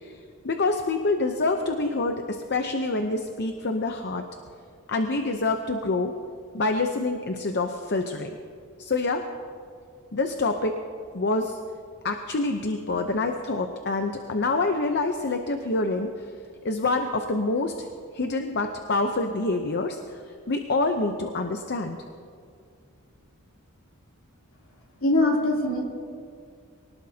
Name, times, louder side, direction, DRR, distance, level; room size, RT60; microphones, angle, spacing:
voice 1, 0.4-4.2 4.9-6.1 6.5-8.3 8.8-9.2 10.1-10.8 11.1-11.6 12.0-16.1 16.6-17.7 18.1-20.0 20.5-22.0, left 3 dB, 50° left, 5 dB, 0.8 m, -26 dB
voice 2, 25.0-25.8, left 1 dB, 70° left, -2 dB, 3.2 m, -22 dB
24.5 x 18.5 x 2.8 m, 2.3 s
head